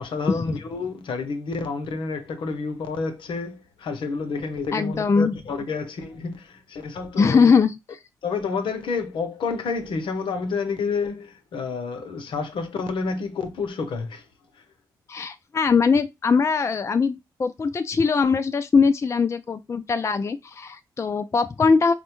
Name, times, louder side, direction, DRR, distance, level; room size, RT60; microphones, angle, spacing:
voice 1, 0.0-7.5 8.2-14.2, left 4 dB, 65° left, 0.7 m, -29 dB
voice 2, 4.7-5.3 7.2-8.0 15.1-21.9, left 5 dB, 30° left, 0.3 m, -21 dB
4.2 x 2.1 x 2.9 m
hypercardioid pair, 40°, 9 cm